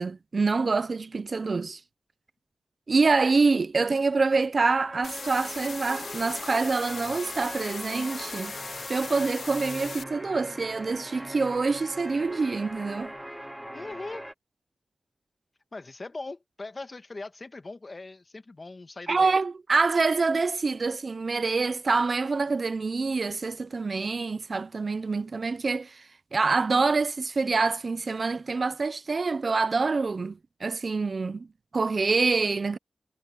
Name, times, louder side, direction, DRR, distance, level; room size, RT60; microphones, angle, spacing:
voice 1, 0.0-1.8 2.9-8.6 8.9-13.1 19.1-26.0 26.3-31.5 31.7-32.8, right 4 dB, 55° right, 0.6 m, -26 dB
sound 1, 4.9-14.3, equal, 10° right, 1.7 m, -41 dB
sound 2, 5.0-10.0, left 5 dB, 75° left, 2.8 m, -39 dB
voice 2, 13.7-14.3 15.7-19.3, left 3 dB, 45° left, 2.0 m, -40 dB
cardioid pair, 45°, 0 cm